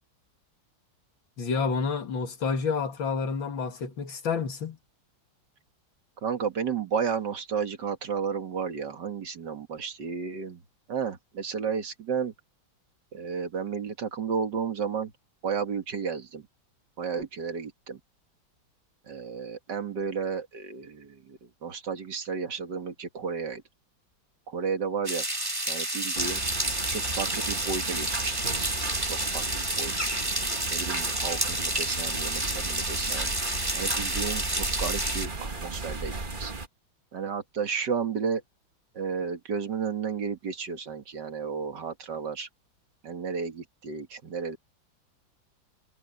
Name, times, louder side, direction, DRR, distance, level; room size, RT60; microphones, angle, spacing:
voice 1, 1.4-4.8, left 5 dB, 80° left, 2.8 m, -29 dB
voice 2, 6.2-10.6 10.9-12.3 13.1-15.1 15.4-16.5 17.0-18.0 19.1-23.6 24.5-25.2 25.7-26.4 26.9-28.8 29.0-29.9 30.7-33.3 33.7-36.5 37.1-38.4 38.9-42.5 43.0-44.6, right 6 dB, 60° right, 2.4 m, -32 dB
sound 1, 25.0-35.3, right 1 dB, 10° right, 1.9 m, -30 dB
sound 2, 26.1-36.7, right 3 dB, 25° right, 1.6 m, -35 dB
omnidirectional pair, 2.1 m